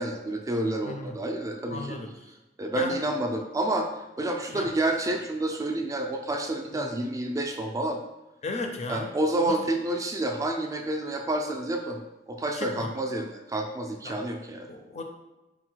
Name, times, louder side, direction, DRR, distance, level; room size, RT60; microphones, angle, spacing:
voice 1, 0.0-2.0 2.6-3.9 4.2-8.0 8.9-12.0 12.3-14.7, right 1 dB, 20° right, 3 dB, 0.4 m, -29 dB
voice 2, 0.8-1.2 1.7-2.1 2.7-3.0 4.5-4.7 6.7-6.8 8.4-9.1 9.4-9.6 12.5-12.9 14.0-14.2 14.7-15.0, left 3 dB, 40° left, 4 dB, 0.5 m, -35 dB
4.0 x 2.1 x 4.4 m, 1.0 s
head